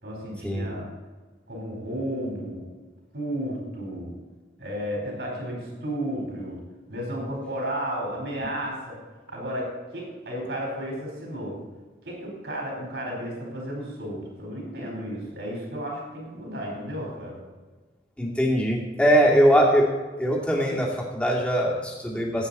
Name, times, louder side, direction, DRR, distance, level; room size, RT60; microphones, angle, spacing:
voice 1, 0.0-0.9 1.5-2.6 3.1-4.1 4.6-6.6 6.9-9.0 9.3-11.6 12.0-17.4, equal, 85° right, -2 dB, 4.2 m, -33 dB
voice 2, 18.2-19.9 20.2-22.5, equal, 5° left, -3 dB, 2.3 m, -21 dB
16.0 x 8.7 x 4.2 m, 1.3 s
head